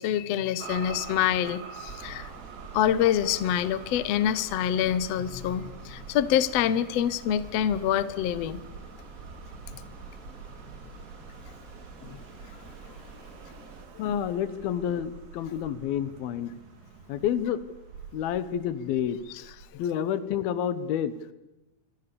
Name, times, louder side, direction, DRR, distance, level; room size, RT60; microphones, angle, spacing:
voice 1, 0.0-2.3 2.7-8.6 12.0-12.2 19.3-19.4, left 10 dB, 65° left, 15 dB, 1.6 m, -26 dB
sound 1, 0.6-19.7, right 7 dB, 75° right, 3.9 m, -47 dB
sound 2, 1.9-13.9, right 3 dB, 25° right, 2.3 m, -47 dB
voice 2, 14.0-16.5 17.1-17.6 18.1-19.2 19.7-21.1, left 9 dB, 85° left, 14 dB, 3.1 m, -29 dB
25.5 x 25.0 x 7.0 m, 1.0 s
omnidirectional pair, 4.2 m